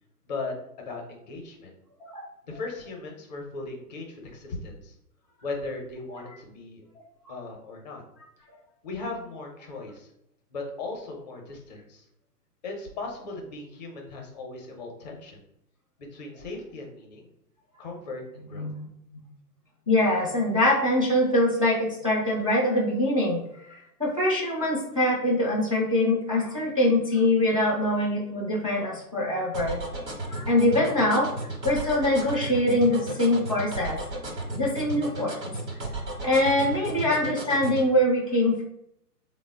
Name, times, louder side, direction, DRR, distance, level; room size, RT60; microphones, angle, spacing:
voice 1, 0.3-1.7 2.4-4.9 5.4-6.8 7.3-8.0 8.8-10.1 10.5-12.0 12.6-15.4 16.1-17.3 17.8-18.7, left 3 dB, 30° left, 1 dB, 0.5 m, -37 dB
voice 2, 19.9-23.4 24.0-29.8 30.3-31.3 31.6-34.0 34.5-35.5 36.2-38.6, left 1 dB, 25° right, -6 dB, 0.3 m, -23 dB
sound 1, 29.5-37.9, right 1 dB, 85° right, 1.0 m, -34 dB
3.4 x 2.0 x 3.3 m, 0.77 s
figure-of-eight pair, 120°, 48 cm